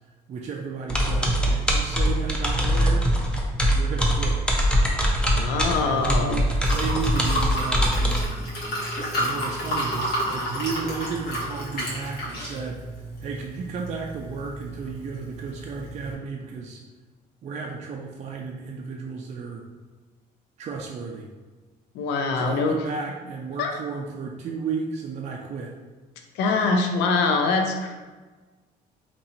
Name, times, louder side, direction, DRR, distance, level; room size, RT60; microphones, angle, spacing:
voice 1, 0.3-3.1 3.7-4.4 5.8-8.4 9.1-12.8 13.2-16.8 17.4-19.6 20.6-21.3 22.3-25.7, right 5 dB, 40° right, -1 dB, 0.4 m, -33 dB
sound 1, 0.9-8.2, equal, 5° left, 0.6 m, -22 dB
voice 2, 5.3-6.5 21.9-22.8 23.6-23.8 26.4-28.0, left 4 dB, 85° left, 4 dB, 0.5 m, -23 dB
Liquid, 5.6-16.1, equal, 65° left, 1.3 m, -32 dB
2.9 x 2.7 x 4.1 m, 1.3 s
cardioid pair, 110°, 17 cm